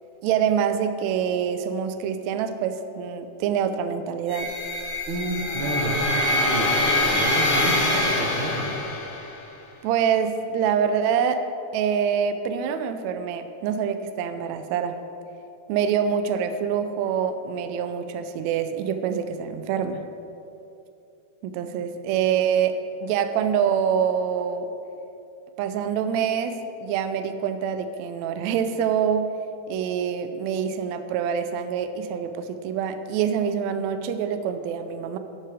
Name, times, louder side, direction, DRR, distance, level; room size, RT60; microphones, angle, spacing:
voice 1, 0.2-4.5 9.8-11.4 11.7-15.0 15.7-20.0 21.4-24.7 25.6-29.3 29.7-35.2, right 7 dB, 80° right, 9 dB, 1.8 m, -25 dB
sound 1, 4.3-9.3, left 1 dB, 50° left, 0.8 m, -24 dB
voice 2, 5.1-8.7, right 1 dB, 60° right, -2 dB, 1.5 m, -29 dB
11.5 x 7.6 x 4.9 m, 2.8 s
omnidirectional pair, 3.4 m